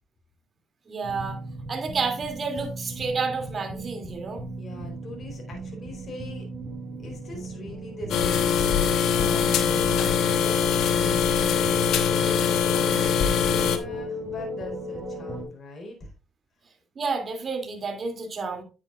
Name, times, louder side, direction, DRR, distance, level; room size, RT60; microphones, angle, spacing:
voice 1, 0.9-1.4 1.7-4.4 17.0-18.6, right 4 dB, 45° right, 4 dB, 2.6 m, -30 dB
sound 1, 1.0-15.4, equal, 20° right, 5.3 m, -37 dB
voice 2, 4.6-6.5 7.0-10.8 13.6-16.1, left 2 dB, 45° left, 1 dB, 4.2 m, -41 dB
sound 2, 8.1-13.8, left 7 dB, 85° left, 1.1 m, -22 dB
9.4 x 8.5 x 2.4 m, 0.32 s
cardioid pair, 90°, 0 cm